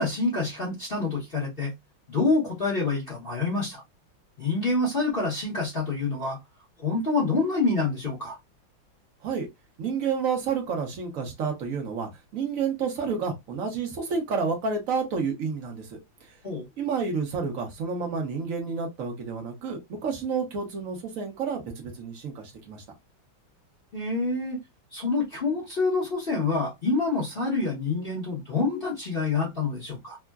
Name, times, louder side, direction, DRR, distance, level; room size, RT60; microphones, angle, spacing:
voice 1, 0.0-1.7 2.1-3.8 4.4-6.4 6.8-8.4 16.4-16.7 23.9-24.6 24.9-30.2, left 3 dB, 40° left, 0.8 m, -27 dB
voice 2, 9.8-16.3 16.8-22.8, right 5 dB, 55° right, 0.9 m, -30 dB
3.6 x 2.1 x 2.3 m
omnidirectional pair, 2.2 m